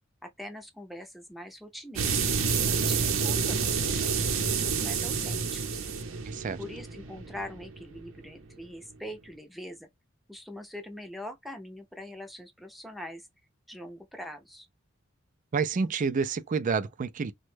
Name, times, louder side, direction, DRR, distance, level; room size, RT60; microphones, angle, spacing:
voice 1, 0.2-2.3 2.7-5.8 6.6-9.9 10.3-13.3 13.7-14.7, left 1 dB, ahead, 0.6 m, -43 dB
sound 1, 2.0-8.4, right 5 dB, 85° right, 0.7 m, -29 dB
voice 2, 6.3-6.6 15.5-17.3, right 5 dB, 40° right, 0.3 m, -29 dB
3.0 x 2.2 x 3.2 m
head